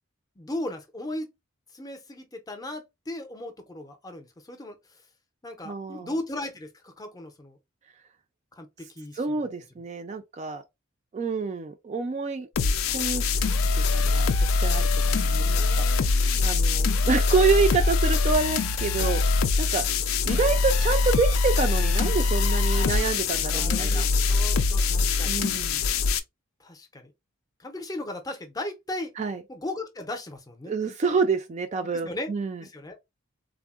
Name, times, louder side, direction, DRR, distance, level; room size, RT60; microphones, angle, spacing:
voice 1, 0.4-1.3 1.7-5.0 5.4-7.6 8.5-9.2 15.1-16.4 19.0-19.1 22.7-25.4 26.6-27.1 27.6-29.1 29.5-30.7 31.9-32.3 32.6-33.0, left 1 dB, 20° left, 0.5 m, -37 dB
voice 2, 5.6-6.1 9.2-10.6 11.1-12.5 12.9-13.5 13.7-15.8 16.4-19.8 20.2-24.0 25.2-25.8 29.2-29.4 30.7-32.6, right 4 dB, 35° right, 0.3 m, -27 dB
sound 1, 12.6-26.2, left 4 dB, 90° left, 0.4 m, -23 dB
3.5 x 2.0 x 2.3 m
head